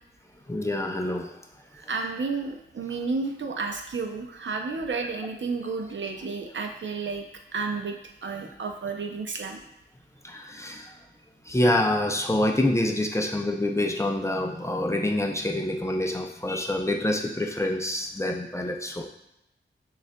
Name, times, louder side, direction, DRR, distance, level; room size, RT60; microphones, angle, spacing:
voice 1, 0.5-1.4 10.2-11.0 11.4-19.1, left 1 dB, 15° left, 2 dB, 0.5 m, -26 dB
voice 2, 1.9-7.2 7.5-8.0 8.2-9.6, right 4 dB, 65° right, 3 dB, 0.5 m, -31 dB
6.1 x 2.4 x 2.2 m, 0.83 s
wide cardioid pair, 55°, 21 cm